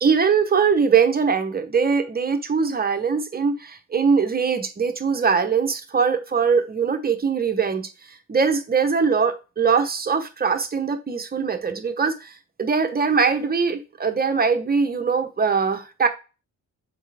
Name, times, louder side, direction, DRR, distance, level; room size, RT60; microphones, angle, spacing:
voice 1, 0.0-16.1, right 5 dB, 30° right, 1.0 m, -22 dB
7.2 x 4.3 x 3.5 m
cardioid pair, 120°, 32 cm